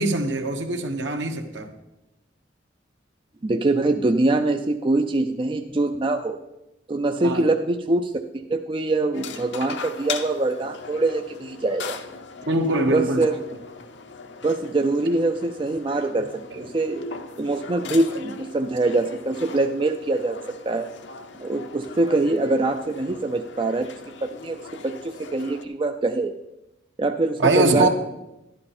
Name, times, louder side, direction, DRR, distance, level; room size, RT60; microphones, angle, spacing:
voice 1, 0.0-1.7 7.2-7.4 12.5-13.2 27.4-27.9, right 2 dB, 70° right, 4 dB, 1.3 m, -22 dB
voice 2, 3.4-6.4 6.9-12.0 12.9-13.4 14.4-17.1 17.4-20.9 21.4-23.9 24.2-26.3 27.0-27.9, right 2 dB, 25° right, 5 dB, 0.4 m, -24 dB
sound 1, 9.1-25.7, left 5 dB, 70° left, 0.8 m, -39 dB
12.0 x 11.0 x 4.3 m, 0.94 s
head